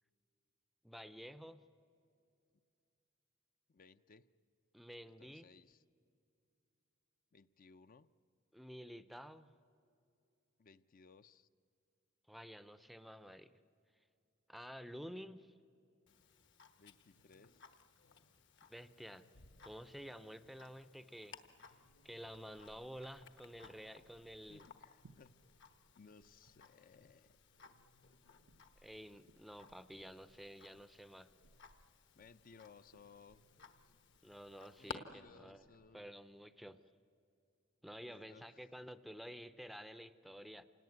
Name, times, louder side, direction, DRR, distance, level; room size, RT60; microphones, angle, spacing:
voice 1, 0.8-1.7 4.7-5.5 8.5-9.5 12.3-13.5 14.5-15.5 18.7-19.3 19.6-21.4 22.0-24.7 28.8-31.3 34.2-35.6 35.9-36.8 37.8-40.6, equal, ahead, 13 dB, 0.5 m, -51 dB
voice 2, 3.7-4.3 5.2-5.8 7.3-8.1 10.6-11.5 16.8-17.6 24.4-25.4 26.0-27.4 32.2-33.4 33.8-33.9 34.8-36.1 38.0-38.7, left 5 dB, 45° left, 12 dB, 0.5 m, -62 dB
Tick-tock, 16.1-35.0, left 5 dB, 60° left, 1.2 m, -59 dB
Sound Walk - Stairs, 21.8-36.0, right 3 dB, 85° right, 0.7 m, -71 dB
27.5 x 18.5 x 9.4 m, 2.6 s
head